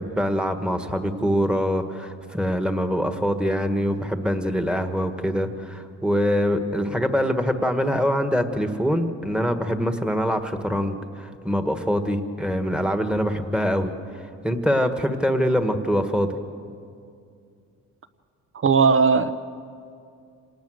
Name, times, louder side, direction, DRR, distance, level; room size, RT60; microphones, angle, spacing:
voice 1, 0.0-13.9 14.4-16.3, equal, 5° right, 7 dB, 1.6 m, -24 dB
voice 2, 18.5-19.3, right 5 dB, 45° right, 10 dB, 0.9 m, -17 dB
26.5 x 19.0 x 6.5 m, 2.4 s
cardioid pair, 90°, 30 cm